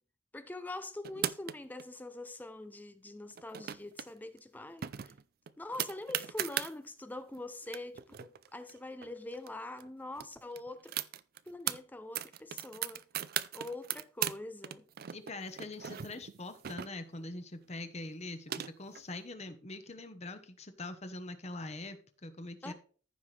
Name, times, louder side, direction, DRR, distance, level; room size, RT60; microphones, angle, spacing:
voice 1, 0.3-5.1 5.6-10.9 11.5-13.0 13.5-14.8 22.6-22.7, left 2 dB, 10° left, 0.5 m, -44 dB
sound 1, 1.0-1.8 3.3-4.1 4.4-4.5 4.8-6.7 7.3-7.4 7.6-9.5 9.8-9.9 10.1-11.8 12.1-14.4 14.6-17.2 18.1-19.0, right 11 dB, 55° right, 0.4 m, -38 dB
voice 2, 15.1-22.7, left 2 dB, 35° left, 1.1 m, -43 dB
14.5 x 5.7 x 3.3 m
head